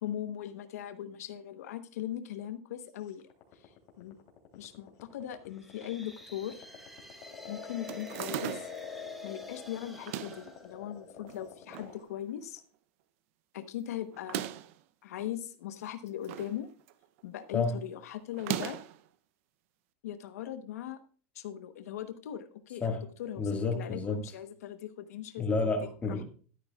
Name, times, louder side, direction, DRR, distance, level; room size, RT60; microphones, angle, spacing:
voice 1, 0.0-3.3 4.0-4.2 4.5-6.7 7.5-8.7 9.2-12.6 13.5-14.4 15.0-16.7 17.2-18.8 20.0-21.0 21.3-25.7, left 11 dB, 90° left, 1.0 m, -39 dB
sound 1, 3.1-12.0, left 6 dB, 45° left, 3.0 m, -45 dB
sound 2, 5.4-11.4, equal, ahead, 1.1 m, -53 dB
sound 3, 7.9-8.9 9.9-10.5 11.3-11.9 12.3-12.4 12.6-12.7 14.1-14.8 15.8-16.6 16.9-17.2 18.3-19.0, right 11 dB, 60° right, 0.6 m, -38 dB
voice 2, 23.4-24.2 25.4-26.2, left 3 dB, 15° left, 1.7 m, -30 dB
12.0 x 10.0 x 2.3 m
supercardioid pair, 145°, 8 cm